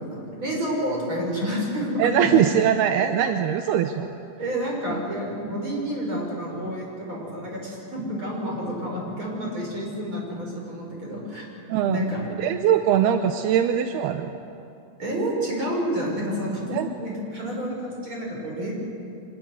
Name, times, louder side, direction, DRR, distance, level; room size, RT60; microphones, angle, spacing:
voice 1, 0.0-2.3 4.4-11.4 11.9-12.2 15.0-18.7, equal, 25° right, -2 dB, 7.3 m, -29 dB
voice 2, 2.0-4.1 4.9-5.0 11.7-12.0 12.4-14.3 16.7-16.9, right 9 dB, 75° right, 6 dB, 2.5 m, -22 dB
25.5 x 21.5 x 9.7 m, 2.6 s
omnidirectional pair, 5.4 m